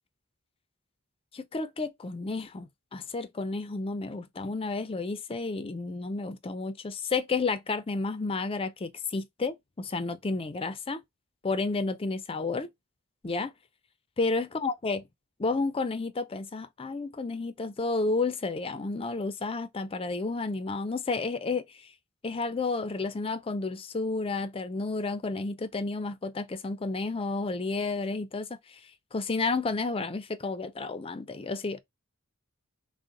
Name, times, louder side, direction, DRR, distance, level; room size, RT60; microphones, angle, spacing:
voice 1, 1.3-11.0 11.4-12.7 13.2-13.5 14.2-15.0 15.4-21.6 22.2-28.8 29.1-31.8, left 3 dB, 25° left, 0.4 m, -31 dB
3.8 x 2.1 x 3.7 m
head